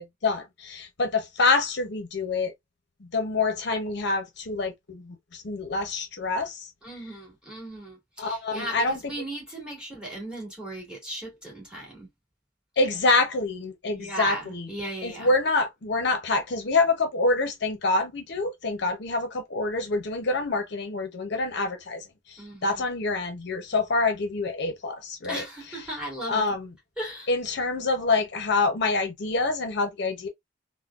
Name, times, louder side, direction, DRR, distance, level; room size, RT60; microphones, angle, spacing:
voice 1, 0.0-2.5 3.0-6.7 8.2-9.0 12.8-14.7 15.0-25.4 26.3-26.7 27.3-30.3, left 3 dB, 60° left, 0.7 m, -26 dB
voice 2, 6.8-12.1 13.9-15.3 22.4-22.8 25.2-26.5 27.0-27.3, right 1 dB, 5° right, 1.9 m, -37 dB
3.6 x 2.1 x 2.3 m
head